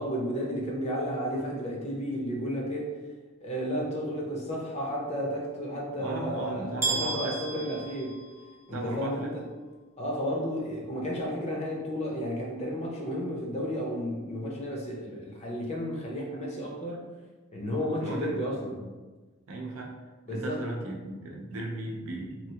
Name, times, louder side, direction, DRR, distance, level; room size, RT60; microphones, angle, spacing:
voice 1, 0.0-3.0 3.4-8.2 8.7-9.5 10.0-17.1 17.5-18.9 20.3-20.6, equal, 30° left, -1 dB, 0.6 m, -32 dB
voice 2, 6.0-7.3 8.7-9.3 18.0-18.4 19.5-20.0 20.3-22.5, right 2 dB, 80° right, 0 dB, 0.6 m, -36 dB
sound 1, 6.8-8.8, right 3 dB, 10° right, 0.5 m, -33 dB
3.1 x 2.4 x 2.8 m, 1.3 s
head